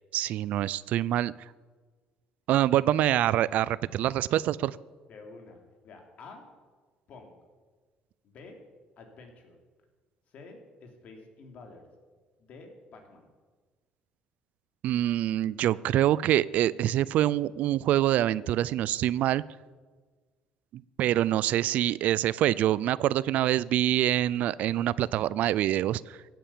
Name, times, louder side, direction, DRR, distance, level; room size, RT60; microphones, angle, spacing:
voice 1, 0.1-1.3 2.5-4.8 14.8-19.4 21.0-26.2, right 13 dB, 65° right, 20 dB, 0.4 m, -25 dB
voice 2, 5.1-6.5 7.1-7.3 8.2-8.6 9.0-9.6 10.3-11.8 12.4-13.3, left 3 dB, 55° left, 3 dB, 3.1 m, -49 dB
16.0 x 9.1 x 8.6 m, 1.4 s
cardioid pair, 135°, 3 cm